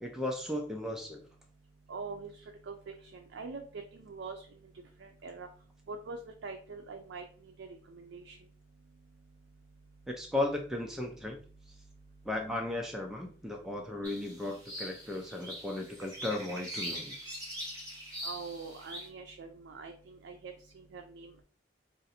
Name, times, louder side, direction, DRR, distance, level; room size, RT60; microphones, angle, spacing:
voice 1, 0.0-1.2 10.1-11.4 12.3-17.3, left 2 dB, 5° right, 1 dB, 0.4 m, -35 dB
voice 2, 1.9-2.3 2.7-2.8 3.1-3.6 3.9-4.4 5.0-5.5 5.9-7.2 7.6-7.7 7.9-8.4 18.2-19.9 20.2-20.5 20.9-21.3, right 4 dB, 80° right, 4 dB, 0.4 m, -43 dB
sound 1, 14.0-19.1, equal, 20° right, 1.2 m, -42 dB
2.6 x 2.5 x 4.1 m, 0.43 s
head